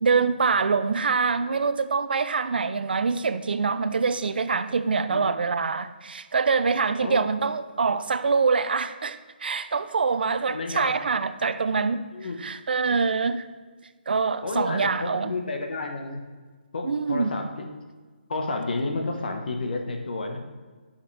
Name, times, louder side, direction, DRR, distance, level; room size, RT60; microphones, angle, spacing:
voice 1, 0.0-12.0 12.4-13.4 14.1-15.3 16.8-17.5, right 5 dB, 70° right, 12 dB, 0.5 m, -25 dB
voice 2, 5.1-5.4 7.0-7.3 10.5-10.9 12.1-12.5 14.4-16.2 16.7-17.7 18.3-20.4, left 3 dB, 60° left, 3 dB, 1.2 m, -31 dB
9.5 x 5.7 x 3.3 m, 1.4 s
hypercardioid pair, 170°, 6 cm